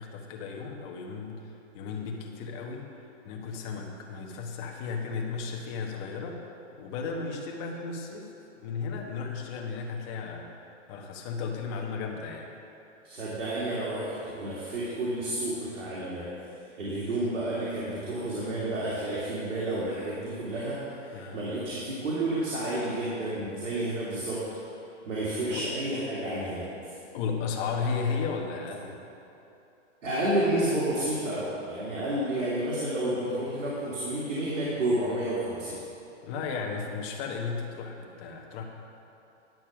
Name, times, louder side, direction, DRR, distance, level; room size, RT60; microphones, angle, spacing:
voice 1, 0.0-2.9 3.2-6.5 6.8-8.3 8.6-12.5 21.1-21.4 25.5-25.6 27.1-29.0 32.3-32.5 36.2-38.6, left 5 dB, 30° left, 1 dB, 1.3 m, -34 dB
voice 2, 13.0-16.3 16.8-20.8 21.0-24.4 25.1-26.7 30.0-35.8, right 1 dB, 80° right, -7 dB, 2.7 m, -30 dB
11.0 x 6.5 x 6.2 m, 2.9 s
hypercardioid pair, 150°, 37 cm